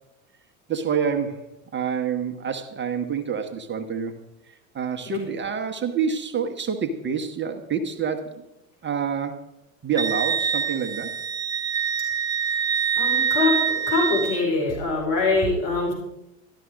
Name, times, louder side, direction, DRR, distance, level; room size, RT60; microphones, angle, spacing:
voice 1, 0.7-1.5 1.7-4.2 4.7-8.4 8.8-9.4 9.8-11.1, right 6 dB, 25° right, 6 dB, 1.4 m, -27 dB
Wind instrument woodwind instrument, 10.0-14.4, right 7 dB, 10° right, 0.5 m, -25 dB
voice 2, 13.0-13.6 13.9-15.9, left 3 dB, 60° left, -1 dB, 5.0 m, -23 dB
13.0 x 12.5 x 5.2 m, 0.89 s
hypercardioid pair, 80°, 42 cm